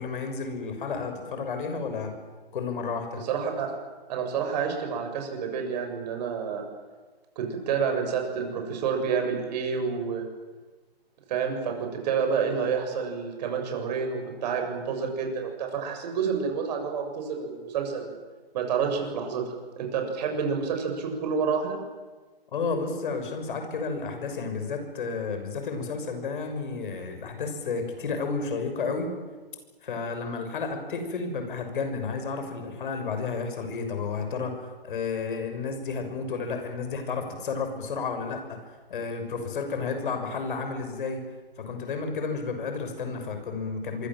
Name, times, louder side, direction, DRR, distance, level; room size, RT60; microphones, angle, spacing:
voice 1, 0.0-2.1 2.5-3.2 22.5-29.1 29.8-38.6 38.9-41.2 41.6-44.1, left 4 dB, 55° left, 6 dB, 6.5 m, -32 dB
voice 2, 3.1-3.7 4.1-6.6 7.4-10.3 11.3-18.2 18.5-19.4 19.8-21.8, right 6 dB, 45° right, 4 dB, 7.1 m, -29 dB
27.0 x 23.5 x 7.7 m, 1.3 s
figure-of-eight pair, 130°, 30 cm